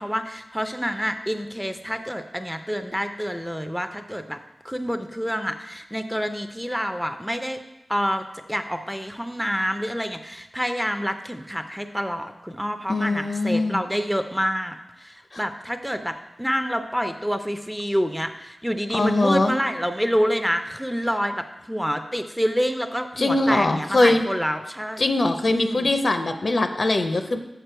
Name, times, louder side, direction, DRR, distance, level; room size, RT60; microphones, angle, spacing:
voice 1, 0.0-4.4 4.6-7.6 7.9-25.0 25.5-25.9, equal, ahead, 8 dB, 0.4 m, -27 dB
voice 2, 12.9-13.8 15.3-15.4 18.9-19.5 23.2-24.2 25.0-27.4, left 2 dB, 50° left, 7 dB, 0.6 m, -21 dB
6.7 x 6.1 x 4.5 m, 0.93 s
wide cardioid pair, 90°, 0 cm